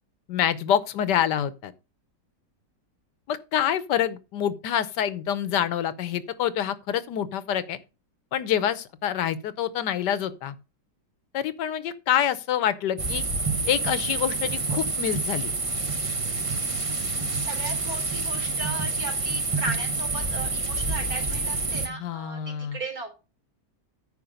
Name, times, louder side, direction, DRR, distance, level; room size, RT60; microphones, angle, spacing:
voice 1, 0.3-1.7 3.3-7.8 8.3-10.5 11.3-13.2 13.7-15.5 21.9-22.8, left 10 dB, 80° left, 1.4 m, -26 dB
sound 1, 13.0-21.9, right 3 dB, 25° right, 0.8 m, -28 dB
voice 2, 17.3-23.1, right 3 dB, 55° right, 3.8 m, -36 dB
9.6 x 5.6 x 5.2 m
omnidirectional pair, 1.8 m